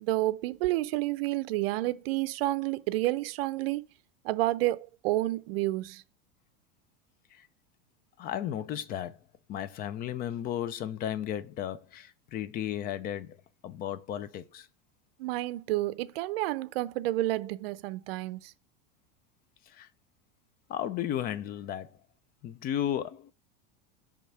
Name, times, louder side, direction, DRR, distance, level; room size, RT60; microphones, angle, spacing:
voice 1, 0.0-3.8 4.2-6.0 15.2-18.5, right 17 dB, 75° right, 0.6 m, -30 dB
voice 2, 8.2-9.2 9.5-13.4 13.6-14.7 19.8-19.9 20.7-21.9 22.4-23.3, left 10 dB, 30° left, 0.5 m, -34 dB
5.3 x 3.6 x 5.7 m
supercardioid pair, 140°, 30 cm